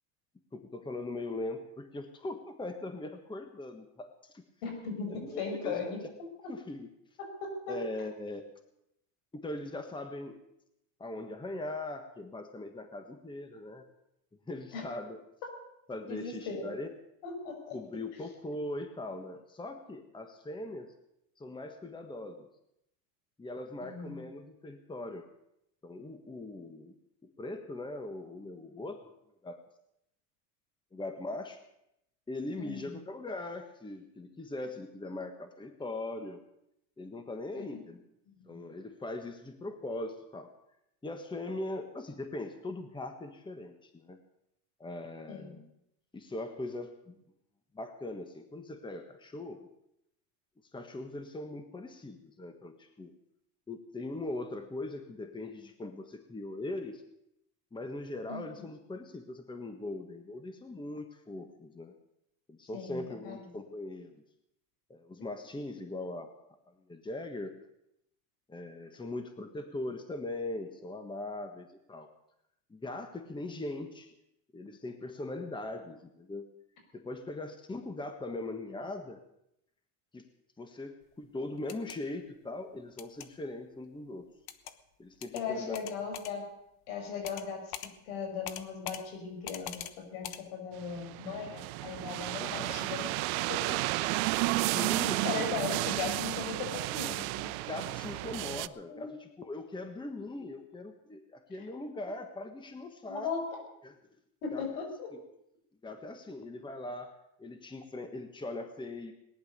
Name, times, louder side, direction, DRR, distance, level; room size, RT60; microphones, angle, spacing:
voice 1, 0.5-4.4 5.1-5.8 6.5-6.9 7.7-8.5 9.3-10.4 11.0-13.8 14.5-15.2 15.9-16.9 17.7-20.9 21.4-22.5 23.4-25.3 25.8-26.9 27.4-29.0 29.4-29.6 30.9-31.6 32.3-36.4 37.0-38.0 38.5-40.5 41.0-44.2 44.8-45.7 46.1-47.2 47.7-49.7 50.7-53.1 53.7-57.0 57.7-61.9 62.5-64.2 64.9-66.3 66.9-67.5 68.5-72.1 72.7-74.1 74.5-76.5 76.9-79.2 80.1-80.2 80.6-84.3 85.0-85.8 92.4-92.8 94.7-95.5 95.8-95.9 97.7-103.3 103.8-103.9 104.5-104.6 105.1-105.2 105.8-109.1, left 2 dB, 10° left, 7 dB, 1.4 m, -40 dB
voice 2, 4.6-6.0 7.4-7.8 14.7-14.9 16.1-16.8 17.2-17.8 23.8-24.2 32.6-32.9 37.6-37.8 38.3-38.6 45.3-45.5 58.3-58.7 62.7-63.5 85.3-86.4 86.9-87.7 88.0-93.8 95.2-97.5 98.9-99.1 103.1-103.5 104.4-105.1, left 5 dB, 80° left, 3 dB, 5.9 m, -38 dB
sound 1, 81.6-82.0 83.0-83.3 84.5-84.7 85.2-85.4 85.7-86.3 87.2-87.5 87.7-87.9 88.5-89.0 89.5-89.9 90.2-90.4, left 11 dB, 60° left, 1.3 m, -42 dB
sound 2, 90.8-98.7, right 21 dB, 85° right, 0.6 m, -32 dB
18.5 x 11.0 x 6.7 m, 0.80 s
supercardioid pair, 125°, 42 cm